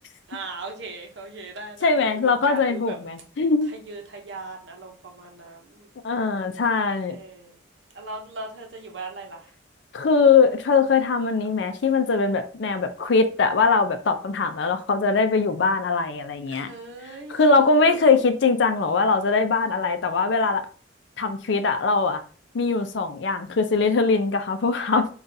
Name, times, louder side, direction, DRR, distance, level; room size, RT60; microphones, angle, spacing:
voice 1, 0.3-3.0 3.7-5.9 7.1-7.6 7.9-9.5 16.5-17.9, right 3 dB, 70° right, 0.8 m, -39 dB
voice 2, 1.8-3.7 6.0-7.2 9.9-16.7 17.3-20.6 21.2-22.2 22.5-25.1, left 4 dB, 70° left, 0.5 m, -21 dB
3.9 x 2.4 x 2.7 m
head